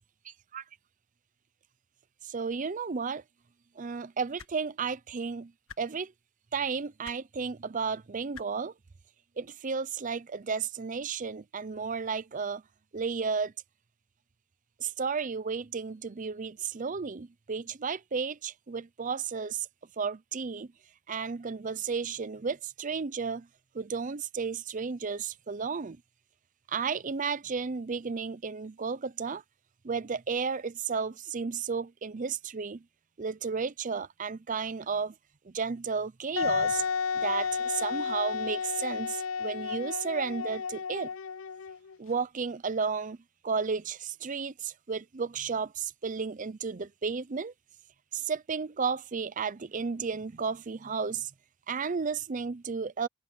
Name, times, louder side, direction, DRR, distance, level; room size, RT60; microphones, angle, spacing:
voice 1, 2.3-3.2 3.8-5.5 5.8-6.1 6.5-8.7 9.4-12.6 12.9-13.5 14.8-19.7 20.0-20.7 21.1-23.5 23.7-26.0 26.7-29.4 29.8-32.8 33.2-35.1 35.5-36.8 37.1-41.1 42.0-43.2 43.4-47.5 48.1-51.3 51.7-53.1, right 5 dB, 40° right, 0.5 m, -33 dB
sound 1, 4.4-4.5 5.7-5.8 7.0-7.2 8.3-8.5 9.7-9.8, left 6 dB, 85° left, 1.8 m, -46 dB
Wind instrument woodwind instrument, 36.4-41.9, left 5 dB, 65° left, 0.4 m, -32 dB
head